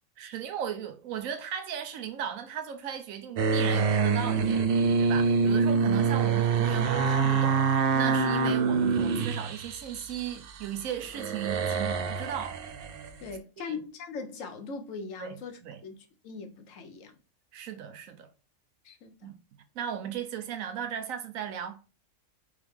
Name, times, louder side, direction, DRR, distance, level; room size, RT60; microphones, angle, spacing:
voice 1, 0.2-4.7 5.0-12.6 13.6-13.7 15.2-15.8 17.5-18.3 19.2-19.4 19.7-21.8, right 9 dB, 80° right, 1.1 m, -36 dB
sound 1, 3.4-10.7 11.0-13.1, right 5 dB, 60° right, 0.6 m, -26 dB
voice 2, 13.2-17.1 18.8-19.3, left 4 dB, 70° left, 1.1 m, -40 dB
3.6 x 3.2 x 3.4 m
omnidirectional pair, 1.4 m